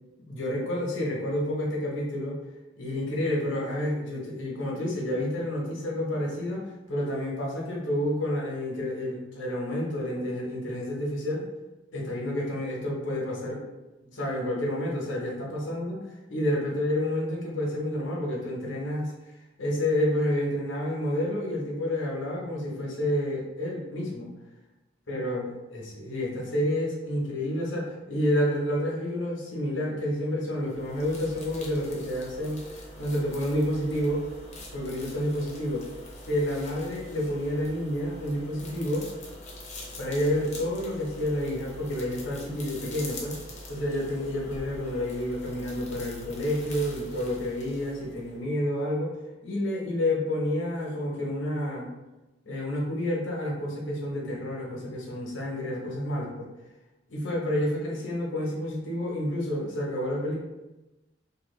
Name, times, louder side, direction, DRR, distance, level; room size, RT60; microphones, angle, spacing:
voice 1, 0.2-2.4 2.8-11.5 11.9-13.6 14.0-16.0 16.3-19.1 19.6-24.3 25.1-32.6 33.0-34.3 34.7-35.9 36.3-39.1 40.0-43.4 43.7-49.1 49.4-51.9 52.5-56.5 57.1-60.4, left 1 dB, 80° left, -3 dB, 0.8 m, -29 dB
sound 1, 30.6-48.4, left 1 dB, 35° left, 0.6 m, -44 dB
2.7 x 2.2 x 3.1 m, 1.0 s
head